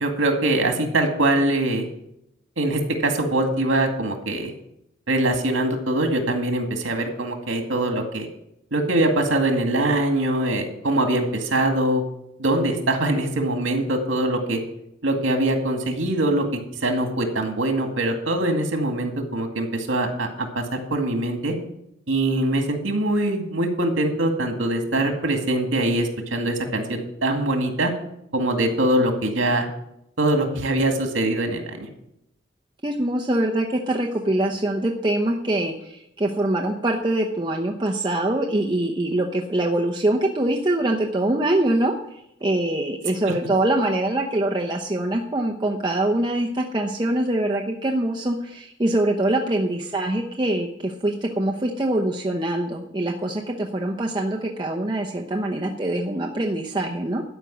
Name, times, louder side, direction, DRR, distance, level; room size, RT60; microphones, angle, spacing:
voice 1, 0.0-1.9 2.6-4.5 5.1-8.3 8.7-12.0 12.4-14.6 15.0-16.4 16.8-21.5 22.1-27.9 28.3-29.7 30.2-31.9, right 1 dB, 80° right, 4 dB, 2.1 m, -23 dB
voice 2, 32.8-57.2, right 1 dB, 25° right, 0 dB, 0.8 m, -24 dB
12.5 x 5.3 x 9.1 m, 0.80 s
head